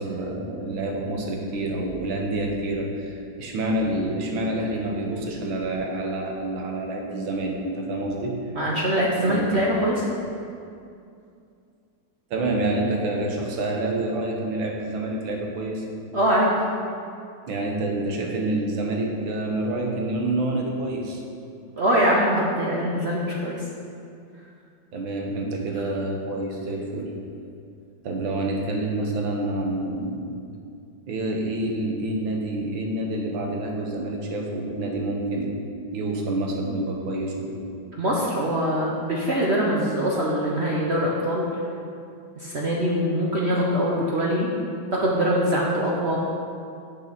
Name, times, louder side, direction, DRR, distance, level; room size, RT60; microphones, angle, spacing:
voice 1, 0.0-8.3 9.2-9.6 12.3-15.8 17.5-21.2 24.9-27.1 28.0-30.4 31.1-35.6 35.9-37.6, right 2 dB, 85° right, 0 dB, 1.9 m, -27 dB
voice 2, 8.5-10.1 16.1-16.5 21.7-23.7 38.0-41.5 42.4-44.5 44.9-46.2, equal, 50° right, -3 dB, 0.8 m, -23 dB
6.9 x 6.5 x 5.8 m, 2.4 s
omnidirectional pair, 2.1 m